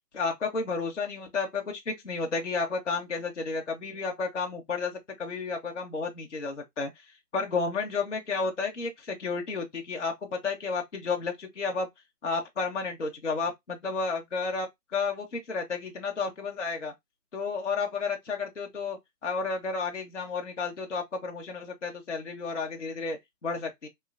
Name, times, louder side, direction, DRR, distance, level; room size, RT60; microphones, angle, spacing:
voice 1, 0.1-6.9 7.3-11.9 12.2-16.9 17.3-23.9, left 4 dB, 50° left, 0.6 m, -32 dB
3.0 x 2.6 x 2.3 m
hypercardioid pair, 180°, 48 cm